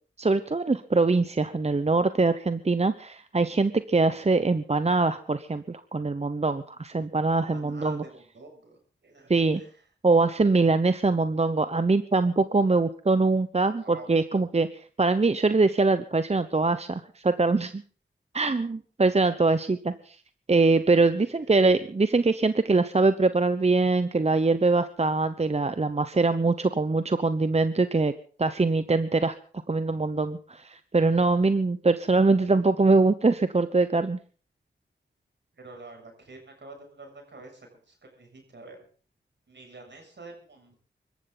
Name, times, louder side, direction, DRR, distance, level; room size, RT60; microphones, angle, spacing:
voice 1, 0.2-8.0 9.3-9.6 10.0-14.7 15.0-17.8 18.3-20.2 20.5-28.1 28.4-29.3 29.7-34.2, right 3 dB, 35° right, 11 dB, 0.9 m, -23 dB
voice 2, 7.5-9.8 13.8-14.2 21.2-21.5 35.5-38.8 39.5-40.7, right 3 dB, 65° right, 3 dB, 7.0 m, -48 dB
24.5 x 13.5 x 4.0 m, 0.43 s
cardioid pair, 45°, 20 cm